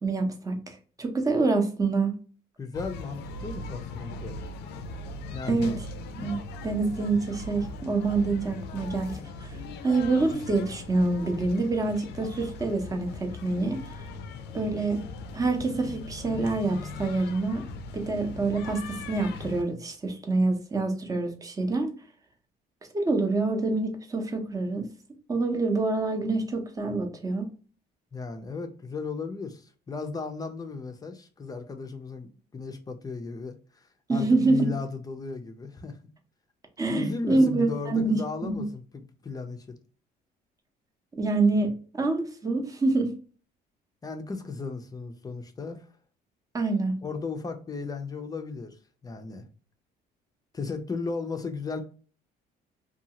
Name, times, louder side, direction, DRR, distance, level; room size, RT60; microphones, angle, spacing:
voice 1, 0.0-2.1 5.5-5.8 6.2-9.6 9.8-14.0 14.5-15.0 15.3-17.7 17.9-21.9 22.9-24.9 25.3-27.5 34.1-34.6 36.8-38.6 41.1-43.1 46.5-46.9, right 3 dB, 20° right, 0.7 m, -26 dB
voice 2, 2.6-4.4 5.3-5.8 28.1-36.0 36.9-39.8 44.0-45.9 47.0-49.4 50.5-51.8, left 4 dB, 20° left, 0.5 m, -35 dB
sound 1, 2.7-19.6, left 3 dB, 80° left, 0.4 m, -39 dB
2.6 x 2.3 x 2.8 m
cardioid pair, 110°, 17 cm